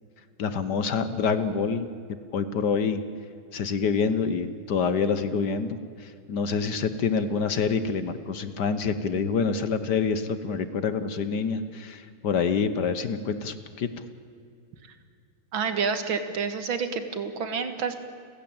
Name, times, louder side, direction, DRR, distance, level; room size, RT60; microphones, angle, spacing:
voice 1, 0.4-1.9 2.3-3.0 3.5-13.9, left 5 dB, 60° left, 12 dB, 1.5 m, -27 dB
voice 2, 15.5-17.9, right 5 dB, 70° right, 9 dB, 2.4 m, -28 dB
30.0 x 15.5 x 8.8 m, 2.4 s
omnidirectional pair, 2.3 m